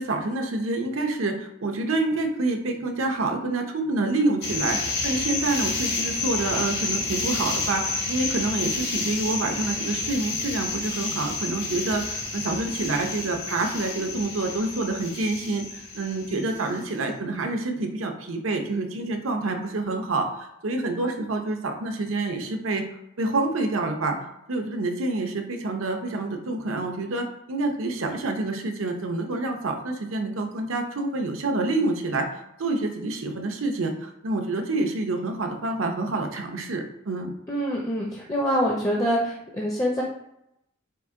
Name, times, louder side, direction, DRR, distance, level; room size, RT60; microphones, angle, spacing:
voice 1, 0.0-22.8 23.2-24.2 24.5-32.3 32.6-37.3, right 2 dB, 85° right, 4 dB, 0.7 m, -27 dB
sound 1, 4.4-16.8, left 3 dB, 50° left, 1.0 m, -30 dB
voice 2, 37.5-40.0, equal, 15° left, -2 dB, 0.5 m, -25 dB
4.7 x 2.6 x 3.6 m, 0.82 s
head